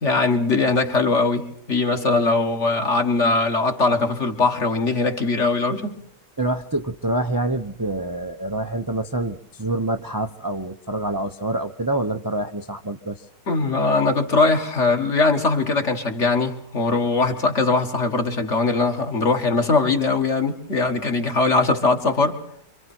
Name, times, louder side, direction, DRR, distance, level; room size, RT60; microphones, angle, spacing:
voice 1, 0.0-5.9 13.5-22.4, left 3 dB, 50° left, 2.2 m, -21 dB
voice 2, 6.4-13.3, right 2 dB, 20° right, 0.6 m, -26 dB
27.0 x 25.0 x 4.5 m
omnidirectional pair, 1.6 m